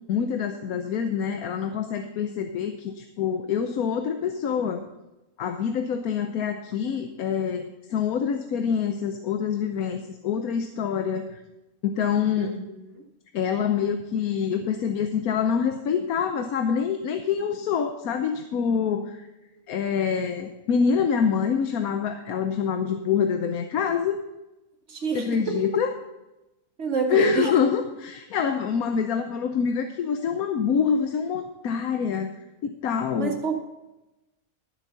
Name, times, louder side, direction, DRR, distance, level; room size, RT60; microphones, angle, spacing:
voice 1, 0.1-4.8 5.4-11.4 11.8-12.5 13.3-19.3 19.7-24.2 25.1-25.9 27.1-32.3 32.6-33.3, left 7 dB, 85° left, 7 dB, 1.2 m, -26 dB
voice 2, 12.4-13.0 24.9-25.7 26.8-27.5 33.2-33.6, right 4 dB, 55° right, 3 dB, 1.8 m, -27 dB
12.5 x 7.5 x 5.5 m, 0.98 s
omnidirectional pair, 1.5 m